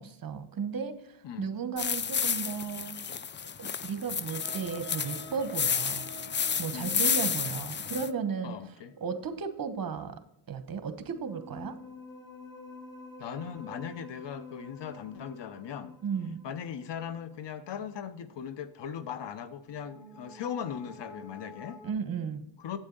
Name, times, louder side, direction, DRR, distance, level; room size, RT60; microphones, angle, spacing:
voice 1, 0.0-3.0 3.6-6.1 6.6-8.6 9.0-10.2 10.5-11.7 16.0-16.4 21.8-22.4, right 6 dB, 50° right, 10 dB, 1.1 m, -35 dB
sound 1, 1.8-8.1, left 6 dB, 25° left, 0.4 m, -31 dB
sound 2, 4.3-9.1 11.0-17.4 19.5-21.9, left 2 dB, 10° left, 3.1 m, -49 dB
voice 2, 6.7-7.0 8.4-8.9 13.2-16.0 16.4-21.8 22.6-22.8, left 8 dB, 65° left, 13 dB, 0.9 m, -39 dB
8.9 x 7.9 x 3.9 m, 0.82 s
cardioid pair, 75°, 46 cm